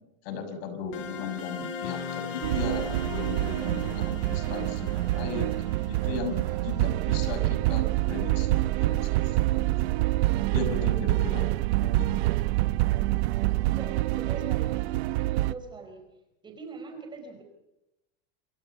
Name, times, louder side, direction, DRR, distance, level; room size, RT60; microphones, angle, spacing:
voice 1, 0.2-5.5 5.9-9.6 10.5-11.5 11.8-12.2, left 4 dB, 65° left, 8 dB, 6.0 m, -36 dB
sound 1, 0.9-7.6, left 6 dB, 40° left, 4.8 m, -40 dB
sound 2, 2.4-15.5, right 17 dB, 70° right, 1.0 m, -26 dB
voice 2, 13.7-14.9 15.4-16.0 16.4-17.4, right 3 dB, 15° right, 5 dB, 4.3 m, -42 dB
27.5 x 25.0 x 5.8 m, 0.89 s
supercardioid pair, 175°, 33 cm